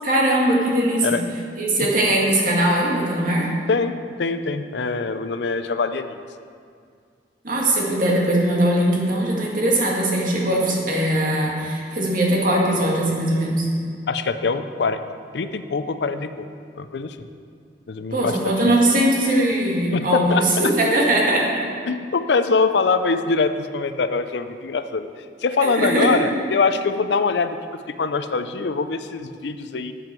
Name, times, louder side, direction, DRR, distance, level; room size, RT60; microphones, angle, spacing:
voice 1, 0.0-1.1 1.6-3.5 7.4-13.7 18.1-21.7 25.6-26.1, right 1 dB, 50° right, -3 dB, 2.0 m, -20 dB
voice 2, 3.7-6.2 14.1-15.0 15.3-16.5 16.8-17.3 17.9-18.5 19.9-20.7 21.9-29.9, left 4 dB, 75° left, 10 dB, 0.5 m, -23 dB
13.0 x 7.8 x 4.5 m, 2.2 s
head